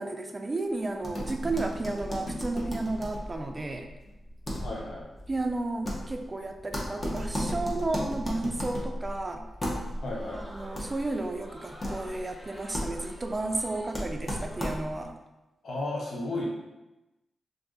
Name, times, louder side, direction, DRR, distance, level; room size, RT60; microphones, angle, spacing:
voice 1, 0.0-3.9 5.3-9.5 10.3-15.2, right 2 dB, 25° right, 4 dB, 0.3 m, -33 dB
sound 1, 1.0-15.1, equal, 30° left, 0.7 m, -36 dB
voice 2, 4.6-5.0 10.0-10.4 15.6-16.5, left 2 dB, 75° left, -3 dB, 0.8 m, -33 dB
Crowd, 9.9-14.6, equal, 15° left, 1.0 m, -49 dB
2.6 x 2.4 x 3.6 m, 0.99 s
cardioid pair, 80°, 0 cm